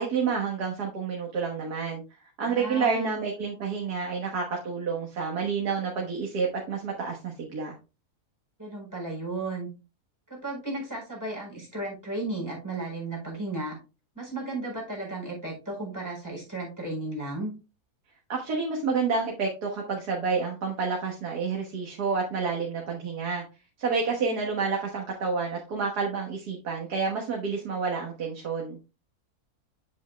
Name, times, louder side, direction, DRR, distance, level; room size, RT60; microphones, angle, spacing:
voice 1, 0.0-2.0 2.4-7.7 18.3-23.4 23.8-28.8, right 5 dB, 90° right, 1.9 m, -29 dB
voice 2, 2.5-3.2 8.6-9.7 10.3-13.8 14.1-17.5, right 2 dB, 10° right, 4.3 m, -34 dB
8.8 x 7.3 x 2.2 m
omnidirectional pair, 1.6 m